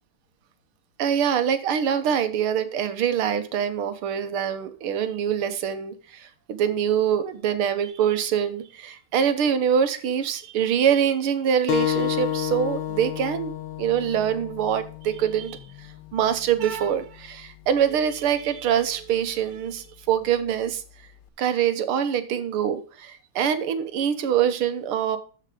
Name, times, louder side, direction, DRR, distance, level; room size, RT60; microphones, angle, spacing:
voice 1, 1.0-13.5 13.8-20.8 21.4-25.2, right 8 dB, 85° right, 10 dB, 1.9 m, -24 dB
sound 1, 11.7-16.8, left 10 dB, 70° left, 1.4 m, -30 dB
13.5 x 4.9 x 5.0 m, 0.39 s
omnidirectional pair, 2.3 m